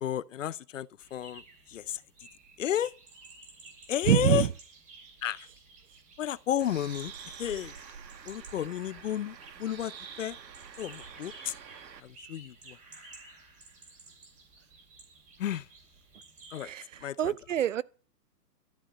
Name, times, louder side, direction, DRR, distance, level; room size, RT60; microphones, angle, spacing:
voice 1, 0.0-2.0 2.6-2.9 3.9-4.5 5.2-5.5 6.2-7.1 7.4-7.7 8.3-10.4 10.8-11.5 12.0-12.8 15.4-15.7 16.5-16.7 17.0-17.3, left 10 dB, 50° left, 0.7 m, -32 dB
sound 1, 1.0-16.7, right 3 dB, 15° right, 3.4 m, -54 dB
voice 2, 4.1-4.5 16.6-17.8, right 10 dB, 50° right, 0.6 m, -26 dB
Bird, 6.6-12.0, right 7 dB, 85° right, 1.7 m, -47 dB
13.0 x 7.2 x 8.4 m
hypercardioid pair, 155°, 50 cm